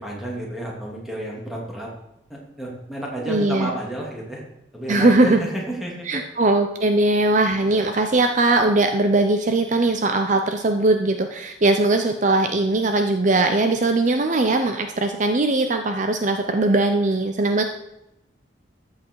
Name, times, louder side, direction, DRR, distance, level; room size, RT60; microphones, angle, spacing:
voice 1, 0.0-1.9 2.3-4.4 4.7-6.2, right 1 dB, ahead, -3 dB, 2.8 m, -31 dB
voice 2, 3.3-3.7 4.9-5.4 6.1-17.6, right 2 dB, 40° right, 7 dB, 0.6 m, -20 dB
14.0 x 7.7 x 4.7 m, 0.86 s
head